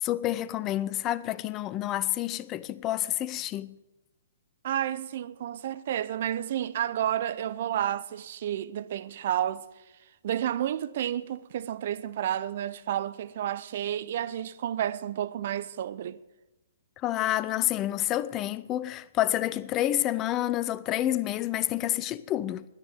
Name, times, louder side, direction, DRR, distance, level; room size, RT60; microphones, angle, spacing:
voice 1, 0.0-3.7 17.0-22.6, left 13 dB, 25° left, 0.6 m, -29 dB
voice 2, 4.6-9.6 10.2-16.2, right 11 dB, 55° right, 0.6 m, -31 dB
11.0 x 9.7 x 9.1 m
hypercardioid pair, 125°, 0 cm